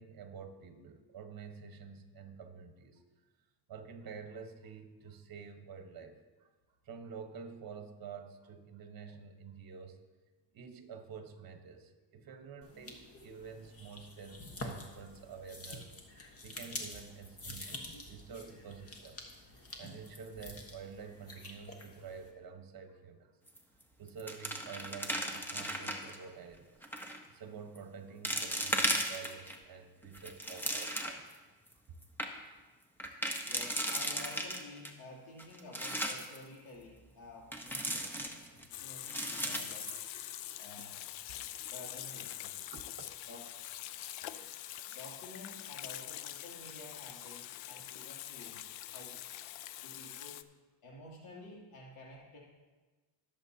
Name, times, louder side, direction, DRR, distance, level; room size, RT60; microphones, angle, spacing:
voice 1, 0.0-3.0 3.7-6.5 6.8-10.0 10.5-15.9 16.4-23.3 24.0-26.8 27.3-31.3 32.5-32.6 42.7-43.1 43.9-44.1, right 6 dB, 45° right, 6 dB, 1.3 m, -49 dB
sound 1, 12.6-22.3, left 2 dB, 30° left, 1.4 m, -48 dB
sound 2, 23.5-23.8 24.1-26.2 26.8-27.2 27.7-27.8 28.2-29.6 30.0-31.3 31.7-31.8 32.0-32.3 33.0-34.9 35.4-36.4 37.5-38.7 39.0-40.5 40.8-40.9 41.4-41.7, equal, 5° left, 0.9 m, -36 dB
voice 2, 33.5-39.9 40.6-41.0 41.7-42.7 43.3-43.4 44.3-44.5 44.9-49.3 49.8-50.5 50.8-52.4, left 2 dB, 85° left, -3 dB, 3.0 m, -51 dB
Water tap faucet / Sink (filling or washing), 38.7-50.4, left 13 dB, 70° left, 0.6 m, -45 dB
20.0 x 7.3 x 2.8 m, 1.3 s
cardioid pair, 120°, 48 cm